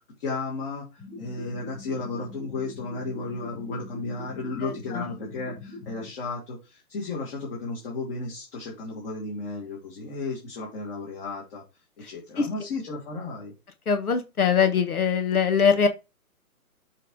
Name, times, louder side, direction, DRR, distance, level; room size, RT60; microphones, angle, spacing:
voice 1, 0.2-0.8 1.2-11.6 12.1-13.5, left 3 dB, 40° left, -4 dB, 3.0 m, -34 dB
sound 1, 1.0-6.1, left 3 dB, 20° left, 4.4 m, -42 dB
voice 2, 4.6-5.1 12.4-12.5 13.9-15.9, left 6 dB, 75° left, 8 dB, 1.3 m, -22 dB
7.5 x 3.4 x 4.5 m, 0.26 s
hypercardioid pair, 145°, 44 cm